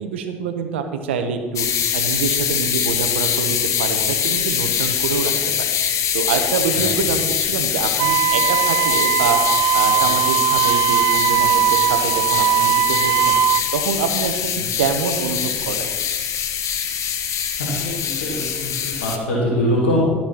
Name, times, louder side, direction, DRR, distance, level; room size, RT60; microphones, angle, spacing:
voice 1, 0.0-1.7 1.9-5.7 6.1-9.4 9.7-13.4 13.7-15.9, right 6 dB, 85° right, 7 dB, 1.0 m, -25 dB
sound 1, 1.6-19.2, left 8 dB, 55° left, 1.2 m, -23 dB
Wind instrument woodwind instrument, 8.0-13.6, right 12 dB, 65° right, 0.5 m, -19 dB
voice 2, 17.6-20.0, equal, 90° left, -5 dB, 2.6 m, -23 dB
13.5 x 6.0 x 5.9 m, 1.4 s
hypercardioid pair, 60°, 6 cm